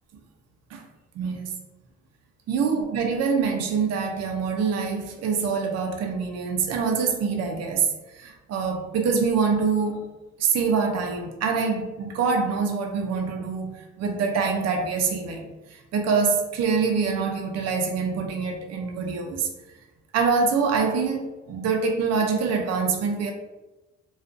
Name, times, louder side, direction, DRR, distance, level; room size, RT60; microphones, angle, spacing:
voice 1, 1.2-1.5 2.5-10.1 10.4-19.5 20.1-23.3, right 5 dB, 60° right, 2 dB, 0.5 m, -25 dB
2.4 x 2.3 x 2.5 m, 1.1 s
cardioid pair, 90°, 30 cm